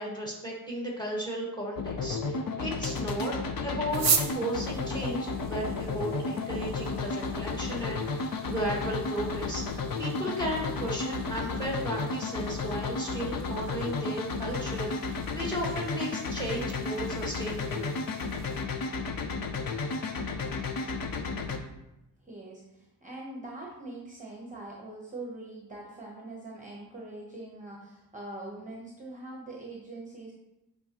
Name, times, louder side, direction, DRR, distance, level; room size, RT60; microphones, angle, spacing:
voice 1, 0.0-3.3 3.6-17.9, right 1 dB, 10° left, -3 dB, 1.6 m, -35 dB
sound 1, 1.8-21.6, left 4 dB, 60° left, 0.7 m, -33 dB
sound 2, 3.9-18.6, right 6 dB, 45° right, 0.7 m, -39 dB
voice 2, 22.2-30.3, right 2 dB, 20° right, -2 dB, 0.9 m, -43 dB
8.3 x 5.1 x 2.9 m, 0.90 s
wide cardioid pair, 170°, 39 cm